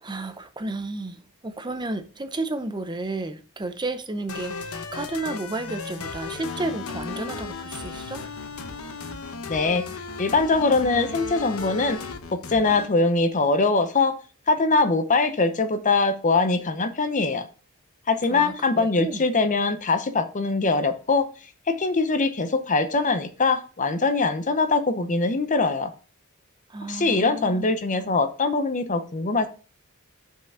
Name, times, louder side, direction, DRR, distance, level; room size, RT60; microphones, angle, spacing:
voice 1, 0.0-8.3 18.3-19.2 26.7-27.6 28.0-28.1, right 2 dB, 20° right, 0.6 m, -32 dB
sound 1, 4.3-12.9, left 4 dB, 80° left, 0.9 m, -35 dB
voice 2, 9.5-9.8 10.2-12.0 12.3-14.2 14.5-17.5 18.1-21.3 21.7-25.9 26.9-29.5, left 3 dB, 35° left, 0.8 m, -22 dB
5.9 x 5.8 x 5.6 m
head